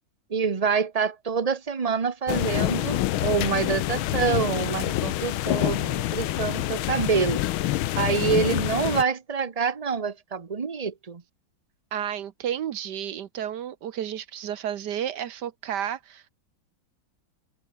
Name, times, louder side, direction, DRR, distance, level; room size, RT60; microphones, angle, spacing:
voice 1, 0.3-7.4 8.0-11.2, right 5 dB, 35° right, 0.6 m, -26 dB
sound 1, 2.3-9.0, left 15 dB, 90° left, 1.6 m, -26 dB
voice 2, 11.9-16.3, right 10 dB, 60° right, 1.4 m, -32 dB
omnidirectional pair, 2.2 m